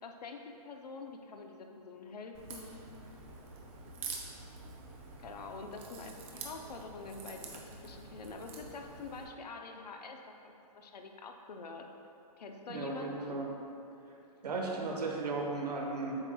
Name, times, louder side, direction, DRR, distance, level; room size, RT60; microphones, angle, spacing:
voice 1, 0.0-3.2 5.2-11.9 12.4-13.4, left 4 dB, 85° left, 3 dB, 0.6 m, -46 dB
Crack, 2.3-9.2, right 4 dB, 20° right, 0.4 m, -47 dB
voice 2, 12.7-13.5 14.4-16.2, right 3 dB, 80° right, 0 dB, 1.0 m, -35 dB
7.8 x 5.5 x 2.3 m, 2.7 s
hypercardioid pair, 165°, 20 cm